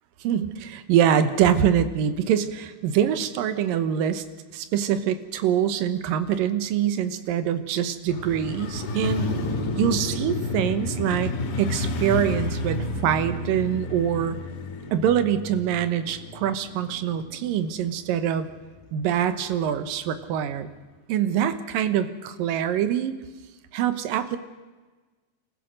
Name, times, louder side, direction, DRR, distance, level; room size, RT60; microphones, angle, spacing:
voice 1, 0.2-4.2 4.5-9.3 9.8-11.3 11.6-14.4 14.9-18.5 18.9-20.7 21.1-23.1 23.7-24.4, right 9 dB, 75° right, 11 dB, 2.7 m, -24 dB
Motorcycle, 8.1-18.2 18.5-18.6, left 2 dB, 75° left, 4.3 m, -31 dB
27.5 x 15.0 x 6.5 m, 1.3 s
omnidirectional pair, 4.2 m